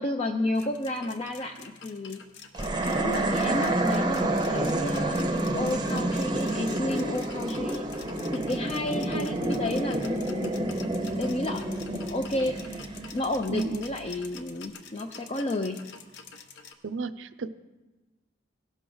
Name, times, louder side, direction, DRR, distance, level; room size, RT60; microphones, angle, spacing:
voice 1, 0.0-2.2 3.0-7.8 8.3-10.7 11.2-12.8 13.1-15.8, left 1 dB, 30° left, 3 dB, 0.4 m, -31 dB
sound 1, 0.5-16.7, left 5 dB, 65° left, 0.8 m, -47 dB
sound 2, 2.5-13.9, right 1 dB, 20° right, 0.6 m, -29 dB
voice 2, 13.5-14.0 16.8-17.5, right 4 dB, 75° right, 13 dB, 0.5 m, -33 dB
17.0 x 6.2 x 3.9 m, 1.1 s
head